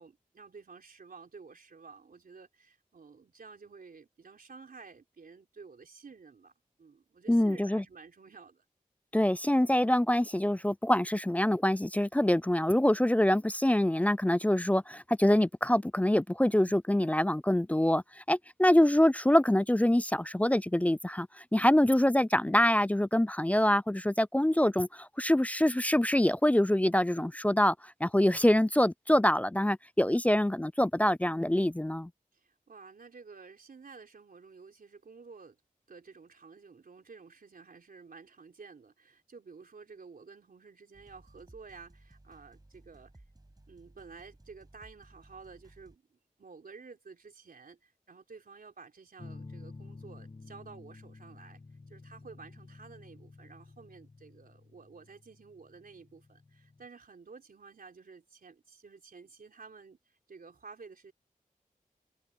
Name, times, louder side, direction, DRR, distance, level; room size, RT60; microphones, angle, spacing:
voice 1, 0.0-6.5 6.8-8.6 32.3-35.6 35.9-43.2 43.7-51.6 51.9-61.1, right 4 dB, 80° right, 3.8 m, -52 dB
voice 2, 7.3-7.8 9.1-21.3 21.5-27.7 28.0-32.1, left 1 dB, 10° left, 0.3 m, -25 dB
sound 1, 40.9-46.0, right 1 dB, 25° right, 6.2 m, -58 dB
sound 2, 49.2-56.9, left 3 dB, 40° left, 1.4 m, -51 dB
cardioid pair, 45°, 15 cm